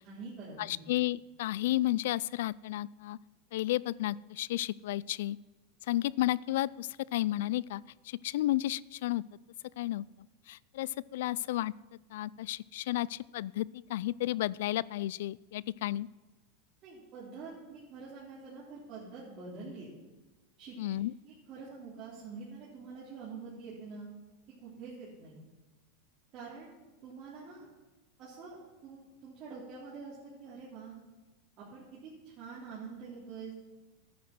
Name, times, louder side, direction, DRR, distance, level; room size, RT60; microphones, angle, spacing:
voice 1, 0.0-0.9 16.8-19.9 20.6-20.8 21.2-24.1 24.6-25.4 26.3-26.7 27.0-27.6 28.2-28.6 28.8-31.0 31.6-33.5, right 4 dB, 40° right, -7 dB, 3.5 m, -46 dB
voice 2, 0.6-3.2 3.5-5.4 5.9-9.2 9.8-10.0 10.5-11.7 12.1-16.1 20.8-21.1, left 15 dB, 75° left, 22 dB, 0.3 m, -32 dB
13.0 x 9.4 x 6.1 m, 1.2 s
supercardioid pair, 140°, 0 cm